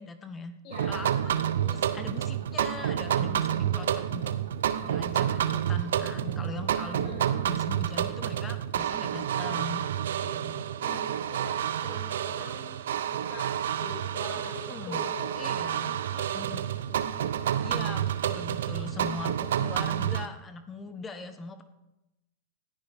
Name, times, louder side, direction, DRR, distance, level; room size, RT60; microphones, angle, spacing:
voice 1, 0.0-0.6 0.8-4.3 4.8-9.8 10.3-10.7 14.4-15.1 15.4-16.6 17.6-21.6, left 3 dB, 20° left, 9 dB, 1.1 m, -41 dB
voice 2, 0.6-1.1 1.4-2.0 3.7-4.1 7.0-7.5 10.2-10.4 10.8-12.7 13.0-13.5 13.8-16.0 16.3-16.6 16.9-17.6, left 3 dB, 45° left, 0 dB, 2.6 m, -44 dB
sound 1, 0.7-20.3, right 10 dB, 75° right, 0.7 m, -29 dB
18.5 x 13.5 x 3.6 m, 0.99 s
hypercardioid pair, 115°, 0 cm